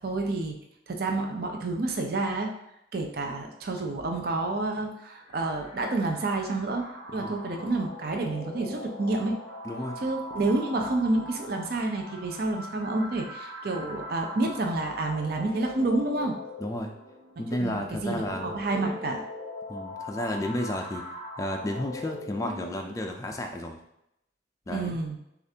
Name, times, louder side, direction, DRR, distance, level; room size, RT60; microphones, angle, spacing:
voice 1, 0.0-0.6 0.9-2.5 2.9-6.8 7.1-9.3 10.0-16.4 17.6-19.2 24.7-25.2, right 2 dB, 55° right, 3 dB, 0.5 m, -29 dB
sound 1, 5.1-23.1, left 1 dB, 80° right, 1.1 m, -41 dB
voice 2, 9.6-10.0 16.6-16.9 17.4-18.5 19.7-21.0 21.4-23.8 24.7-25.0, left 1 dB, 15° left, 2 dB, 0.3 m, -32 dB
6.6 x 2.4 x 2.8 m, 0.81 s
head